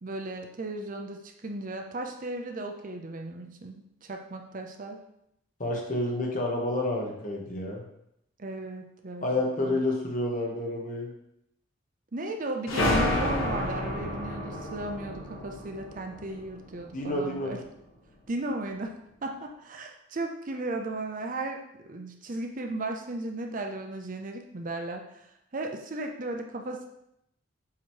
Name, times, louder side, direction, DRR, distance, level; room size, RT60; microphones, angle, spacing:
voice 1, 0.0-5.0 8.4-9.3 9.6-9.8 12.1-17.6 18.3-18.9 19.2-26.9, right 2 dB, 40° right, 3 dB, 0.6 m, -35 dB
voice 2, 5.6-7.8 9.2-11.1 16.9-17.6, left 1 dB, 40° left, 0 dB, 1.2 m, -29 dB
sound 1, 12.7-17.1, left 1 dB, 80° left, 1.2 m, -30 dB
7.3 x 3.1 x 4.5 m, 0.78 s
head